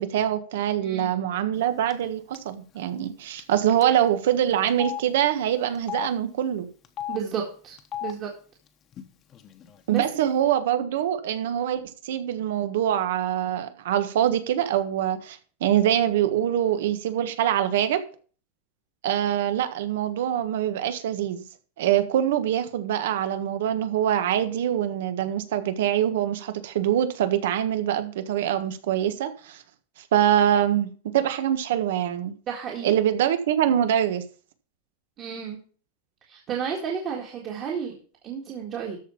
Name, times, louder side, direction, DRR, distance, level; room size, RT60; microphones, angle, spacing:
voice 1, 0.0-6.7 9.9-18.0 19.0-21.4 21.8-29.6 30.1-32.3 32.8-34.2, right 10 dB, 70° right, 1.5 m, -24 dB
voice 2, 0.8-1.2 7.1-7.8 8.0-8.3 9.9-10.3 32.5-33.0 35.2-35.6 36.3-38.0 38.2-39.0, right 7 dB, 30° right, 1.8 m, -32 dB
Telephone, 1.9-2.1 2.3-2.5 3.4-3.5 3.8-3.9 4.7-5.0 5.7-6.1 6.8-7.2 7.8-8.1 8.9-9.0 9.3-10.0, left 11 dB, 25° left, 1.1 m, -34 dB
13.0 x 4.5 x 7.1 m
supercardioid pair, 160°, 0 cm